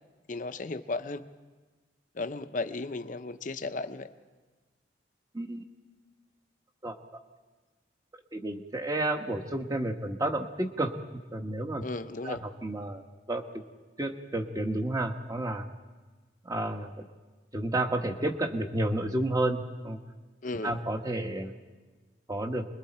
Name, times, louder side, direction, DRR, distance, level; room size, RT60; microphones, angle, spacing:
voice 1, 0.3-1.2 2.2-4.1 11.8-12.4 20.4-20.7, left 3 dB, 45° left, 10 dB, 0.7 m, -35 dB
voice 2, 8.3-10.9 11.3-11.8 12.2-13.4 14.0-15.7 16.4-16.9 17.5-20.0 20.6-21.5 22.3-22.6, right 1 dB, 20° right, 5 dB, 1.2 m, -31 dB
28.5 x 21.5 x 4.4 m, 1.3 s
head